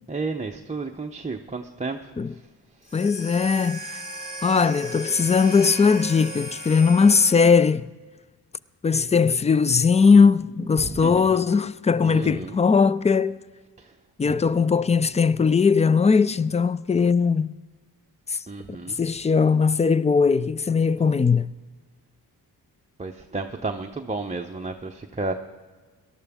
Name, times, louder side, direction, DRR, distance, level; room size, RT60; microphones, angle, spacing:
voice 1, 0.1-2.0 10.8-11.2 12.0-12.6 13.8-13.9 18.5-19.0 23.0-25.3, right 3 dB, 15° right, 0.7 m, -32 dB
sound 1, 2.8-7.6, right 2 dB, 80° left, 2.5 m, -37 dB
voice 2, 2.9-4.0 4.4-7.9 8.8-13.4 14.2-17.5 18.3-18.4 19.0-21.5, left 5 dB, 20° left, 0.3 m, -19 dB
18.0 x 12.5 x 3.6 m
cardioid pair, 70°, 41 cm